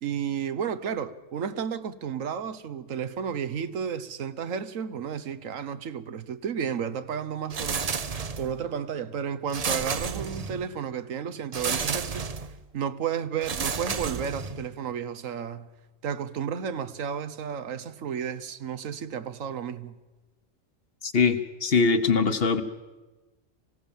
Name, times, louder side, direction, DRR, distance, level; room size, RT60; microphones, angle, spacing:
voice 1, 0.0-7.9 8.4-12.3 12.7-15.7 16.0-20.0, right 7 dB, 80° right, 1.3 m, -32 dB
sound 1, 7.5-8.6 9.5-10.7 11.5-12.6 13.4-14.7, right 5 dB, 35° right, 0.7 m, -31 dB
voice 2, 21.0-22.6, left 4 dB, 50° left, 1.2 m, -22 dB
25.0 x 16.5 x 7.2 m
omnidirectional pair, 1.4 m